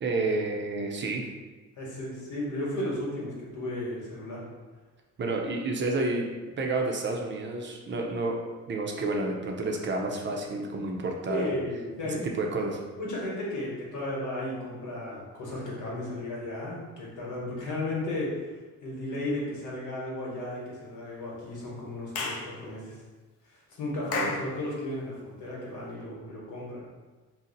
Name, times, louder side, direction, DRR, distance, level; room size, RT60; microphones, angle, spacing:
voice 1, 0.0-1.2 5.2-6.3 6.6-8.4 8.7-11.5 12.1-12.8 24.1-24.3, right 2 dB, 40° right, 0 dB, 0.5 m, -30 dB
voice 2, 1.8-4.5 11.3-12.3 12.9-23.0 23.4-26.9, left 1 dB, 80° left, -5 dB, 1.1 m, -34 dB
Clapping / Chirp tweet, 22.1-22.5 24.1-24.5, left 3 dB, 55° left, 0.5 m, -31 dB
2.6 x 2.0 x 3.8 m, 1.3 s
cardioid pair, 90°, 30 cm